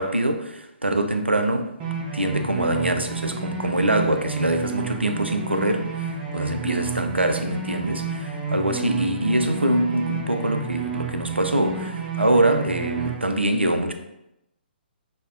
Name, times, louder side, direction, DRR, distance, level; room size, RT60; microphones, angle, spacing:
voice 1, 0.0-1.7 2.1-13.9, right 1 dB, 85° right, 0.4 m, -24 dB
sound 1, 1.8-13.1, right 4 dB, 20° right, 0.5 m, -31 dB
5.0 x 2.0 x 2.4 m
figure-of-eight pair, 130°, 6 cm